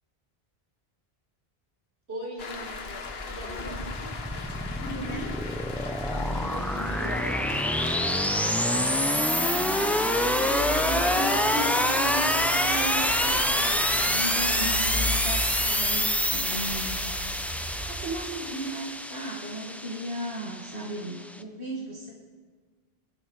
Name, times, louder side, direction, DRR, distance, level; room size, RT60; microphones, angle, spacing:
voice 1, 2.1-2.8 3.3-3.9 6.1-8.2, equal, 85° right, -4 dB, 4.5 m, -40 dB
sound 1, 2.4-16.7, left 4 dB, 75° left, 1.2 m, -38 dB
sound 2, 2.6-21.4, equal, ahead, 0.4 m, -27 dB
sound 3, 3.6-18.0, equal, 30° right, 3.3 m, -39 dB
voice 2, 4.8-5.3 10.3-17.0 17.5-22.1, right 1 dB, 60° right, -5 dB, 2.2 m, -36 dB
22.0 x 13.0 x 3.2 m, 1.5 s
omnidirectional pair, 1.1 m